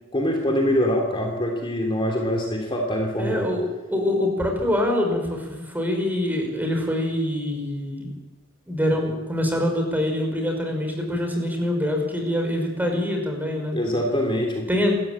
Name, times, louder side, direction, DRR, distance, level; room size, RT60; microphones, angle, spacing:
voice 1, 0.1-3.5 13.7-14.7, equal, 25° left, 2 dB, 3.0 m, -24 dB
voice 2, 3.2-8.1 8.7-13.8 14.7-15.0, left 1 dB, 10° right, 2 dB, 5.7 m, -25 dB
28.0 x 14.5 x 8.8 m, 1.1 s
head